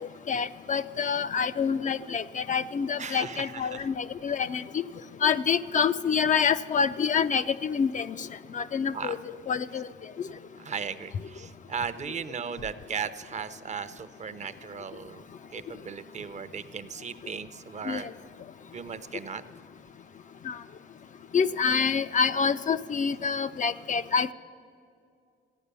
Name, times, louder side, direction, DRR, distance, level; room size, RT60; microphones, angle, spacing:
voice 1, 0.0-4.8 5.2-8.3 8.5-9.2 9.5-9.9 10.2-10.3 17.9-18.1 20.4-20.6 21.3-24.3, left 6 dB, 40° left, 11 dB, 0.4 m, -27 dB
voice 2, 3.0-3.9 8.9-9.2 10.6-15.2 15.5-18.1 18.7-19.4, right 6 dB, 35° right, 12 dB, 0.7 m, -36 dB
15.0 x 9.3 x 6.8 m, 2.4 s
cardioid pair, 90°, 20 cm